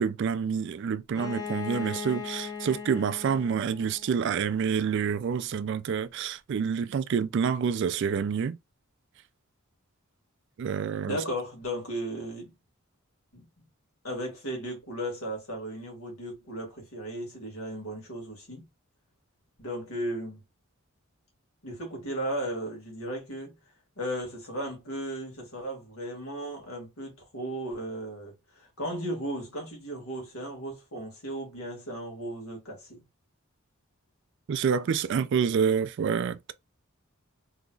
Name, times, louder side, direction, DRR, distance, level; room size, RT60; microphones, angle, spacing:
voice 1, 0.0-8.6 10.6-11.2 34.5-36.5, right 6 dB, 55° right, 0.3 m, -28 dB
Bowed string instrument, 1.1-4.8, left 6 dB, 15° left, 0.5 m, -39 dB
voice 2, 11.1-12.5 13.3-13.7 14.0-18.7 19.6-20.4 21.6-23.6 24.0-33.0, right 1 dB, 75° left, 1.9 m, -36 dB
3.8 x 2.9 x 2.3 m
head